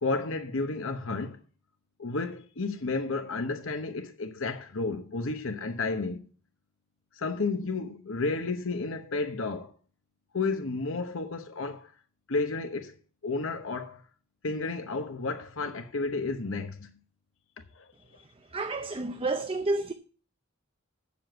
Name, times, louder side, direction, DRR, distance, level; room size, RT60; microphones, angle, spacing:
voice 1, 0.0-1.4 2.0-6.3 7.1-9.7 10.3-11.9 12.3-13.0 13.2-14.0 14.4-16.9 17.7-18.2, left 3 dB, 65° left, 0.9 m, -32 dB
voice 2, 18.5-19.9, right 2 dB, 25° right, 0.6 m, -30 dB
7.8 x 7.0 x 7.8 m
head